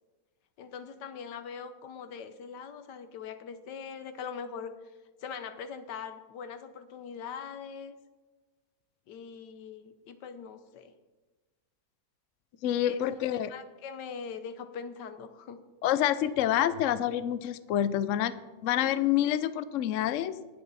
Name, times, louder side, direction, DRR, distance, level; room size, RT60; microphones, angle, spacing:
voice 1, 0.6-4.7 5.2-8.0 9.1-10.9 12.9-13.2 13.5-15.6, left 6 dB, 85° left, 10 dB, 1.5 m, -42 dB
voice 2, 12.6-13.5 15.8-18.3 18.6-20.4, left 11 dB, 70° left, 14 dB, 0.8 m, -27 dB
19.0 x 6.8 x 4.1 m, 1.2 s
omnidirectional pair, 1.8 m